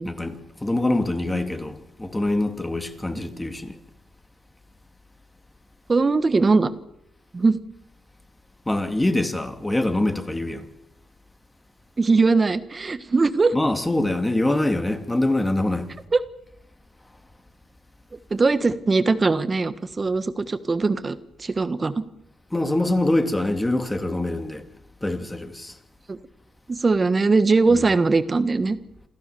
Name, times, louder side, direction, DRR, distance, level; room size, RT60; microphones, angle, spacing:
voice 1, 0.0-3.8 8.7-10.7 13.5-15.9 22.5-24.6 25.0-25.7 27.7-27.8, left 1 dB, 15° left, 2.5 m, -24 dB
voice 2, 5.9-6.7 7.3-7.6 12.0-13.5 16.1-16.2 18.3-22.0 26.1-26.2 26.7-28.8, right 3 dB, 30° right, 1.5 m, -20 dB
27.5 x 15.0 x 7.1 m
cardioid pair, 75°, 0 cm